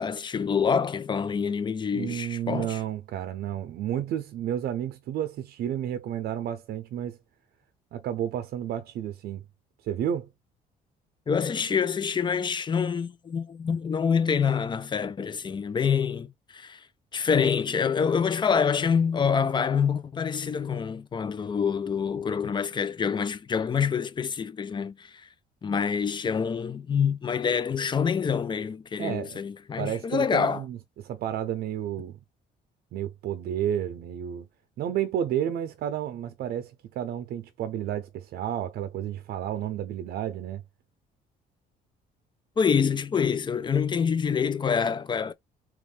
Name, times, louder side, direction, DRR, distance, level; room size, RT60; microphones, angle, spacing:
voice 1, 0.0-2.8 11.3-16.8 17.1-25.2 25.6-30.6 42.6-45.3, left 6 dB, 25° left, 0.6 m, -26 dB
voice 2, 1.9-7.2 7.9-9.4 9.8-10.3 29.0-29.4 29.8-30.8 31.0-32.2 32.9-34.5 34.8-40.6, right 10 dB, 65° right, 0.7 m, -31 dB
3.6 x 3.1 x 3.3 m
cardioid pair, 110°, 17 cm